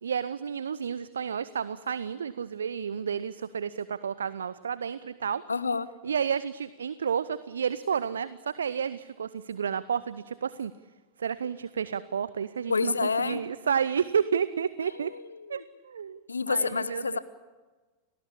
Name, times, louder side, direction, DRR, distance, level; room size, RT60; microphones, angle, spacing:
voice 1, 0.0-5.4 6.0-10.7 11.2-15.1 15.5-16.2 16.5-17.2, right 7 dB, 70° right, 17 dB, 0.7 m, -31 dB
voice 2, 5.5-5.9 12.7-13.4 15.0-15.2 15.5-15.6 16.3-17.2, left 4 dB, 75° left, 15 dB, 1.1 m, -28 dB
30.0 x 20.0 x 8.7 m, 1.3 s
figure-of-eight pair, 90°, 0 cm